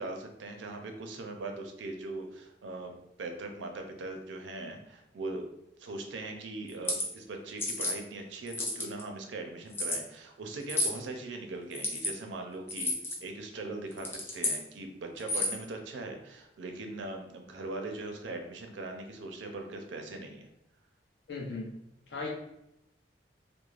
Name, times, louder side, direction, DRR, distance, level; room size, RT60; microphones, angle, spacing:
voice 1, 0.0-2.9 3.2-5.5 5.8-12.9 13.2-20.5, right 2 dB, 85° right, 4 dB, 0.5 m, -40 dB
sound 1, 6.7-7.1 7.6-8.0 8.5-9.0 9.7-10.0 10.7-11.0 11.7-12.1 12.7-13.2 13.9-14.6 15.2-15.6, left 1 dB, 15° left, 0.3 m, -31 dB
voice 2, 21.3-21.7 22.1-22.3, left 3 dB, 70° left, -1 dB, 0.6 m, -36 dB
3.1 x 2.1 x 2.4 m, 0.83 s
head